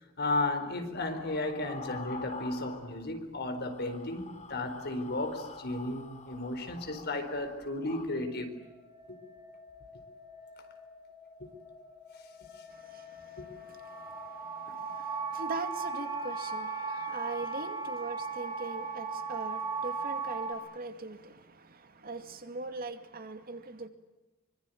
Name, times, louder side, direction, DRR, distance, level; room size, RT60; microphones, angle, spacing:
voice 1, 0.2-8.5 9.1-9.2 11.4-11.5 13.4-13.5, left 2 dB, 50° left, 4.3 m, -34 dB
sound 1, 0.9-3.2 3.5-8.1, left 4 dB, 35° left, 2.8 m, -46 dB
sound 2, 7.7-20.5, right 4 dB, 20° right, 4.4 m, -39 dB
voice 2, 12.7-23.9, right 3 dB, 45° right, 2.3 m, -42 dB
25.0 x 25.0 x 9.3 m
head